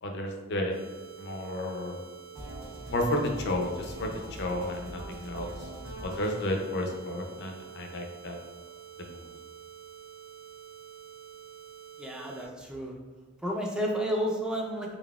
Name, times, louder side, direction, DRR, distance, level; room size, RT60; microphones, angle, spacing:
voice 1, 0.0-0.7 1.2-2.0 2.9-5.7 6.0-8.4 9.0-9.3, left 1 dB, 60° left, 3 dB, 0.5 m, -32 dB
sound 1, 0.7-12.5, right 9 dB, 50° right, 1.1 m, -48 dB
sound 2, 2.3-8.3, equal, 80° right, 1.2 m, -44 dB
voice 2, 12.0-13.0 13.4-15.0, equal, 5° right, -1 dB, 0.3 m, -31 dB
3.9 x 3.5 x 2.3 m, 1.3 s
head